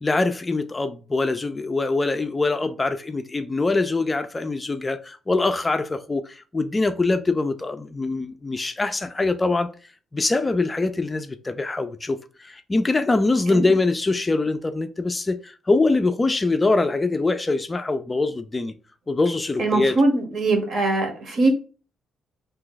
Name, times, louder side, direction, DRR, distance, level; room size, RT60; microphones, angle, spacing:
voice 1, 0.0-9.7 10.1-18.7 19.1-20.0, left 3 dB, 25° left, 0.3 m, -23 dB
voice 2, 19.6-21.5, right 2 dB, 60° right, 1.0 m, -21 dB
2.7 x 2.2 x 3.8 m
cardioid pair, 90°, 0 cm